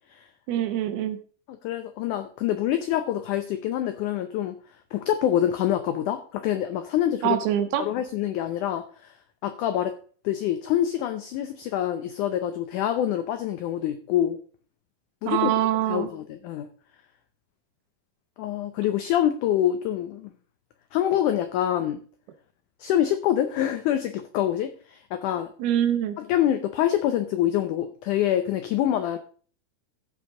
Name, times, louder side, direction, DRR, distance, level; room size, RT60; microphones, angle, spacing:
voice 1, 0.5-1.2 7.2-7.9 15.3-16.1 25.6-26.2, right 11 dB, 90° right, 8 dB, 2.9 m, -24 dB
voice 2, 1.6-4.6 4.9-7.4 7.8-9.1 9.4-9.9 10.2-14.4 15.2-15.5 15.9-16.7 18.4-20.3 20.9-22.0 22.8-25.5 26.2-29.2, left 11 dB, 85° left, 9 dB, 1.7 m, -26 dB
15.0 x 5.3 x 3.7 m, 0.42 s
omnidirectional pair, 4.4 m